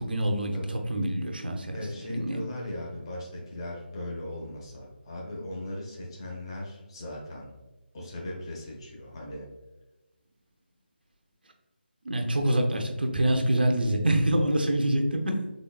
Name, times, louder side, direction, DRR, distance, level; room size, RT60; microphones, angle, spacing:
voice 1, 0.0-2.4 12.0-15.4, right 1 dB, 60° right, 3 dB, 0.7 m, -26 dB
voice 2, 1.7-7.5 7.9-9.5, left 1 dB, 30° left, -2 dB, 0.9 m, -38 dB
4.0 x 3.4 x 2.3 m, 1.1 s
figure-of-eight pair, 155°, 6 cm